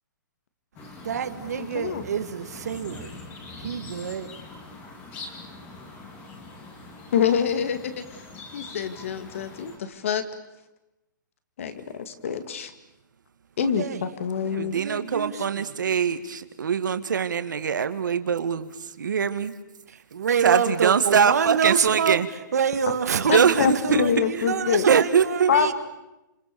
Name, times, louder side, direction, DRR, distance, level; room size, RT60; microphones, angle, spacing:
sound 1, 0.8-9.8, left 2 dB, 15° left, 2.2 m, -43 dB
voice 1, 1.0-3.1 3.6-4.3 13.6-14.0 14.7-15.7 20.1-22.2 22.5-25.7, right 7 dB, 50° right, 2.0 m, -27 dB
voice 2, 1.6-2.0 7.1-8.2 8.5-10.2 11.6-12.7 13.6-14.7 23.3-24.9 25.5-25.7, left 7 dB, 40° left, 2.2 m, -25 dB
voice 3, 14.4-19.5 20.4-22.3 23.2-24.0 24.9-25.5, right 7 dB, 65° right, 2.0 m, -23 dB
29.0 x 27.0 x 7.0 m
hypercardioid pair, 180°, 11 cm